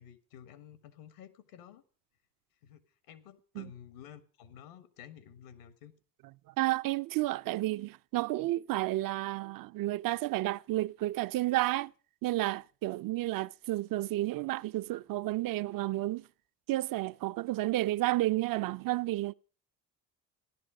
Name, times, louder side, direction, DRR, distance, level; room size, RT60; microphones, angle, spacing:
voice 1, 0.0-1.8 2.6-2.8 3.1-5.9, left 9 dB, 75° left, 1.5 m, -52 dB
voice 2, 6.6-11.9 12.2-16.3 16.7-19.3, right 17 dB, 50° right, 0.5 m, -31 dB
15.5 x 11.5 x 4.9 m
hypercardioid pair, 55°, 45 cm